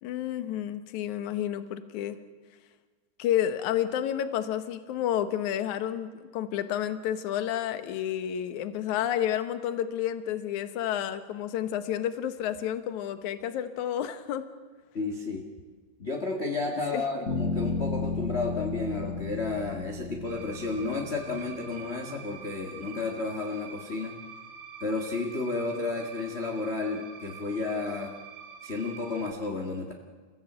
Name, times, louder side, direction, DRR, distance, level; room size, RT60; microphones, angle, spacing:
voice 1, 0.0-2.2 3.2-14.5 16.9-17.0, left 10 dB, 70° left, 10 dB, 2.5 m, -30 dB
voice 2, 14.9-15.5 16.0-24.1 24.8-28.1 28.6-29.9, left 3 dB, 25° left, 2 dB, 1.5 m, -32 dB
sound 1, 17.3-21.3, left 4 dB, 50° left, 6.9 m, -33 dB
sound 2, 20.2-29.3, right 6 dB, 35° right, 2.8 m, -46 dB
29.5 x 16.0 x 8.1 m, 1.5 s
omnidirectional pair, 3.7 m